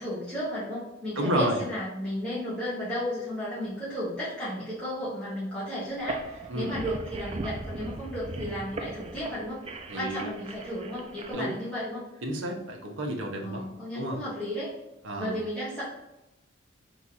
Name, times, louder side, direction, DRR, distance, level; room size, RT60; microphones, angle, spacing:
voice 1, 0.0-9.6 9.9-12.2 13.4-14.7 15.2-15.8, equal, 5° left, -11 dB, 1.4 m, -34 dB
voice 2, 1.2-1.6 6.5-6.7 9.9-10.3 11.3-11.6 12.2-13.6 13.9-14.2 15.0-15.4, right 1 dB, 70° right, 2 dB, 0.8 m, -30 dB
sound 1, 5.9-11.3, right 2 dB, 25° right, 0.3 m, -38 dB
3.6 x 3.0 x 4.0 m, 0.92 s
head